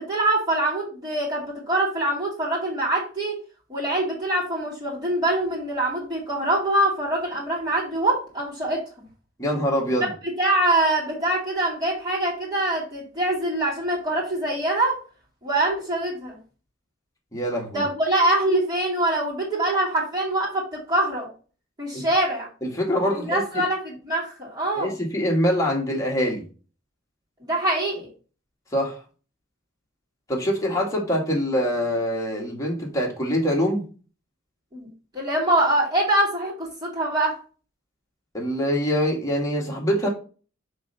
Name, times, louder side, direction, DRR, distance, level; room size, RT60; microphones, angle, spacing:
voice 1, 0.0-3.4 3.7-8.8 10.4-15.0 15.4-16.4 17.7-21.3 21.8-22.5 23.0-24.9 27.4-28.1 34.7-34.9 35.1-37.4, right 1 dB, 20° right, -5 dB, 2.4 m, -24 dB
voice 2, 9.4-10.1 17.3-17.8 21.9-22.0 22.6-23.4 24.8-26.4 28.7-29.0 30.3-33.8 38.3-40.1, equal, 15° left, -1 dB, 1.6 m, -24 dB
6.0 x 3.3 x 5.5 m, 0.37 s
head